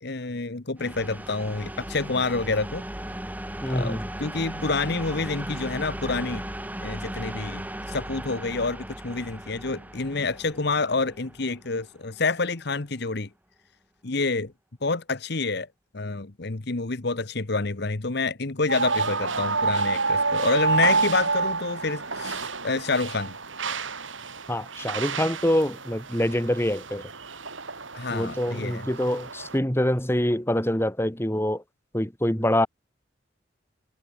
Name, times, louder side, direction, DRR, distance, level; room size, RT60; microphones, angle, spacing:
voice 1, 0.0-2.8 3.7-6.5 6.8-13.3 14.0-14.5 14.8-15.7 15.9-23.4 27.9-28.9, left 3 dB, 60° left, 1.2 m, -28 dB
sound 1, 0.8-12.4, right 1 dB, 10° right, 7.8 m, -37 dB
voice 2, 3.6-4.0 24.5-27.0 28.1-31.6 31.9-32.7, left 1 dB, 15° left, 2.7 m, -25 dB
sound 2, 18.7-29.6, right 4 dB, 85° right, 5.8 m, -29 dB
head